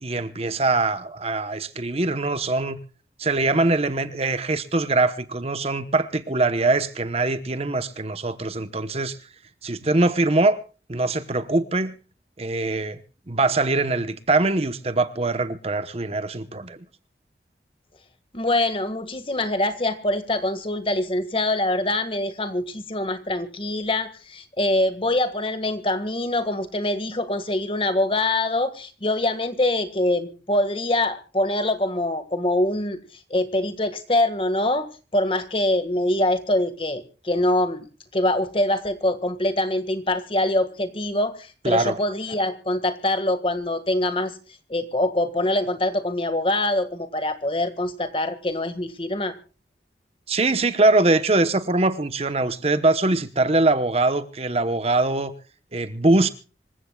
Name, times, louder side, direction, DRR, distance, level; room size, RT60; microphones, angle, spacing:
voice 1, 0.0-2.8 3.2-9.2 9.6-10.6 10.9-12.0 12.4-13.0 13.3-16.8 41.6-42.0 50.3-55.3 55.7-56.3, right 2 dB, 35° right, 1.0 m, -22 dB
voice 2, 18.3-33.0 33.3-37.9 38.1-44.3 44.7-49.3, left 1 dB, 30° left, 1.7 m, -24 dB
26.5 x 15.5 x 2.3 m
head